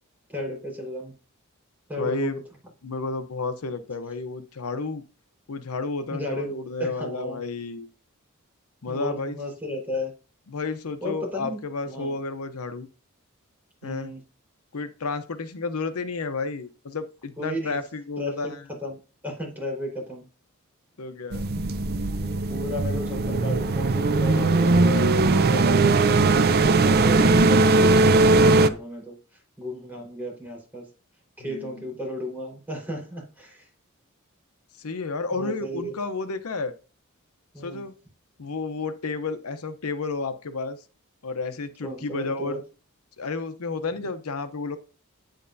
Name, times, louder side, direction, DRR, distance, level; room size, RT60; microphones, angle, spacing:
voice 1, 0.3-1.1 1.9-2.4 6.1-6.5 6.8-7.4 8.9-10.1 11.0-11.6 11.8-12.1 13.8-14.2 17.4-17.8 18.2-18.5 18.8-18.9 19.2-20.2 22.5-30.9 31.4-33.7 35.3-35.9 37.5-37.8 41.8-42.6, equal, 10° right, -2 dB, 4.4 m, -34 dB
voice 2, 2.0-2.4 2.8-5.0 5.5-7.9 8.8-9.4 10.5-12.9 13.8-14.1 14.7-18.7 21.0-21.5 31.4-31.9 34.8-36.7 37.6-37.9 38.4-40.8 41.2-42.6 43.2-44.8, left 3 dB, 85° left, 10 dB, 0.8 m, -31 dB
sound 1, 21.3-28.7, right 3 dB, 45° right, 0.5 m, -19 dB
9.0 x 8.5 x 2.7 m, 0.35 s
head